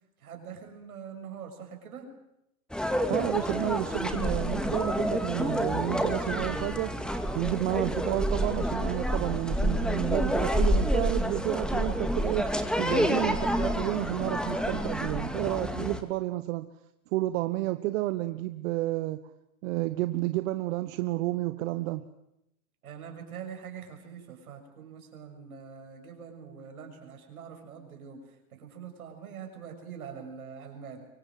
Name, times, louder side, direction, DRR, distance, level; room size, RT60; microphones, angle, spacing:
voice 1, 0.2-2.1 22.8-31.0, right 7 dB, 90° right, 4 dB, 6.5 m, -44 dB
sound 1, 2.7-16.0, equal, ahead, 2.5 m, -28 dB
voice 2, 3.1-6.9 7.3-12.5 12.8-16.7 17.1-19.2 19.6-22.0, right 17 dB, 65° right, 11 dB, 1.3 m, -30 dB
24.5 x 24.0 x 7.8 m, 0.82 s
hypercardioid pair, 105°, 42 cm